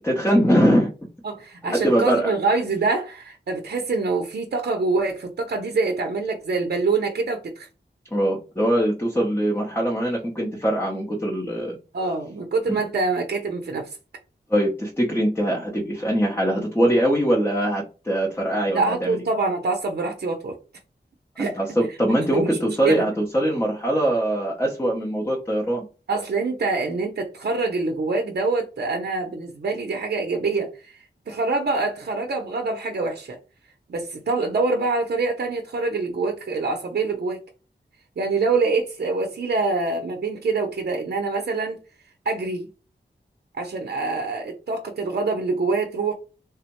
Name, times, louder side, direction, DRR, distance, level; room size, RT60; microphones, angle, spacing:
voice 1, 0.0-0.9 1.6-2.3 8.1-11.8 12.7-12.8 14.5-19.2 21.4-25.8, equal, 10° left, 0.6 m, -22 dB
voice 2, 1.2-7.7 11.9-14.0 18.7-20.5 21.4-21.6 22.3-23.1 26.1-33.4 33.9-37.4 38.2-41.8 42.3-42.7 43.5-46.1, right 3 dB, 65° right, 0.5 m, -25 dB
3.4 x 2.0 x 2.9 m
wide cardioid pair, 100°, 18 cm